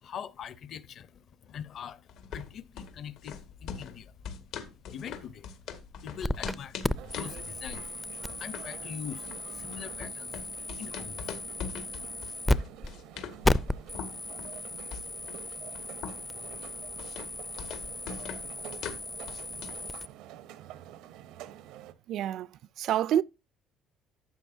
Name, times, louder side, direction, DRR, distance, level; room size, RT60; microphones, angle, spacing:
voice 1, 0.0-10.4 10.8-11.4 11.9-12.3, left 8 dB, 50° left, 0.8 m, -44 dB
sound 1, 2.1-19.9, left 7 dB, 80° left, 1.9 m, -43 dB
sound 2, 6.2-6.6 6.8-12.6 12.8-12.9 13.4-20.1, left 2 dB, 10° left, 0.4 m, -34 dB
sound 3, 6.9-21.9, right 11 dB, 90° right, 0.9 m, -48 dB
voice 2, 22.1-22.5 22.8-23.2, right 11 dB, 65° right, 0.4 m, -27 dB
12.0 x 8.2 x 2.7 m
cardioid pair, 135°, 0 cm